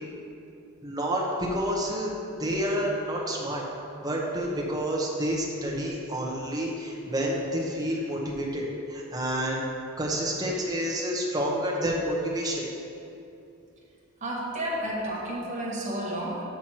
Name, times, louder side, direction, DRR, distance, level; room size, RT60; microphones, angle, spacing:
voice 1, 0.8-2.1 2.4-3.6 4.0-9.6 10.0-12.6, equal, 20° right, -3 dB, 0.9 m, -29 dB
voice 2, 14.2-16.4, right 1 dB, 35° right, -5 dB, 1.2 m, -31 dB
6.2 x 5.8 x 4.4 m, 2.7 s
head